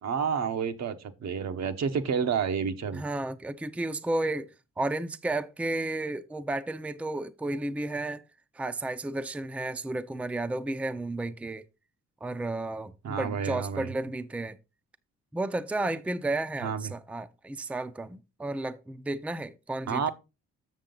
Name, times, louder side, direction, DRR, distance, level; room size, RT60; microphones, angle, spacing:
voice 1, 0.0-3.0 13.0-13.9 16.6-16.9 19.9-20.1, right 6 dB, 60° right, 1.0 m, -30 dB
voice 2, 2.9-4.5 4.8-8.2 8.6-11.6 12.2-14.6 15.3-20.1, right 2 dB, 5° right, 0.5 m, -32 dB
7.4 x 6.4 x 3.8 m
cardioid pair, 90°, 30 cm